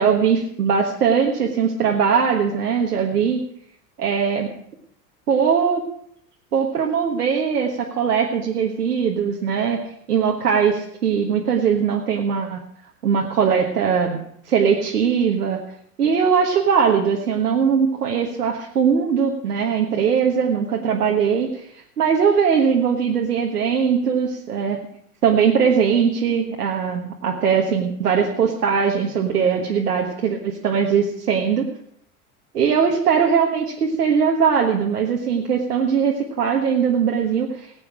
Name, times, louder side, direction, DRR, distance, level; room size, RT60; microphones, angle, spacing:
voice 1, 0.0-3.4 4.0-4.5 5.3-5.8 6.5-9.8 10.1-12.6 13.0-14.2 14.4-15.6 16.0-24.8 25.2-31.6 32.5-37.7, right 6 dB, 75° right, 0 dB, 1.5 m, -20 dB
18.5 x 8.4 x 4.9 m, 0.69 s
figure-of-eight pair, 85°, 46 cm